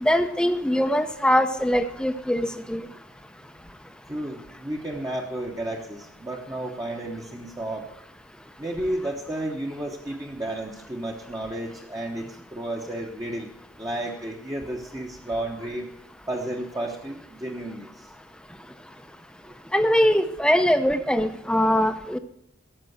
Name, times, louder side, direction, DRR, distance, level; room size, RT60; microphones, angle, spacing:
voice 1, 0.0-2.9 19.7-22.2, equal, 5° left, 9 dB, 0.6 m, -22 dB
voice 2, 4.1-7.9 8.6-13.5 13.8-15.9 16.3-18.1 19.5-19.6, right 1 dB, 20° right, -1 dB, 1.0 m, -32 dB
13.5 x 6.0 x 7.8 m, 0.74 s
head